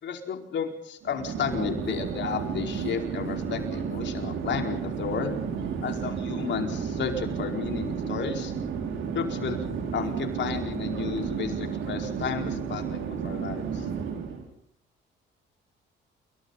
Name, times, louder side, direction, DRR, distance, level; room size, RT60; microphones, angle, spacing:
voice 1, 0.0-5.4 5.8-8.5 9.1-9.6 9.9-13.9, left 7 dB, 65° left, 4 dB, 4.7 m, -32 dB
Chatter / Fixed-wing aircraft airplane, 1.0-14.4, right 6 dB, 85° right, 5.2 m, -32 dB
28.5 x 24.5 x 4.1 m, 0.67 s
cardioid pair, 90°, 20 cm